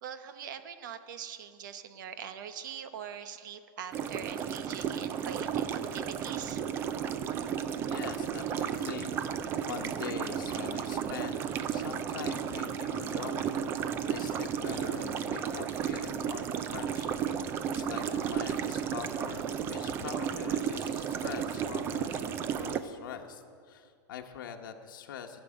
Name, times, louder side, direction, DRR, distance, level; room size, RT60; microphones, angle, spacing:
voice 1, 0.0-6.6, right 8 dB, 70° right, 10 dB, 0.9 m, -43 dB
sound 1, 3.9-22.8, right 8 dB, 20° right, 0.4 m, -33 dB
voice 2, 7.9-9.2 9.7-13.6 14.1-17.1 17.7-25.4, left 8 dB, 85° left, 4 dB, 1.0 m, -43 dB
14.0 x 6.8 x 8.9 m, 2.3 s
supercardioid pair, 170°, 11 cm